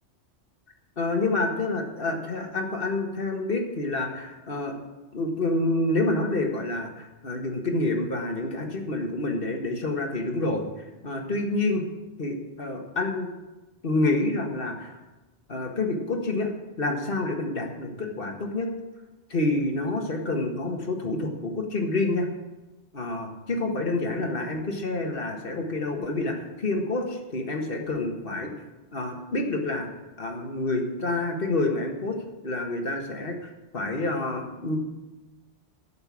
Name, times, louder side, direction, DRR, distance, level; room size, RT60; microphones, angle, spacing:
voice 1, 1.0-4.7 5.1-11.8 12.2-13.3 13.8-15.0 15.5-16.5 16.8-18.7 19.3-22.3 22.9-28.5 28.9-29.9 30.2-32.2 32.4-34.8, left 2 dB, 50° left, 3 dB, 1.8 m, -28 dB
11.5 x 6.9 x 8.5 m, 1.1 s
omnidirectional pair, 1.2 m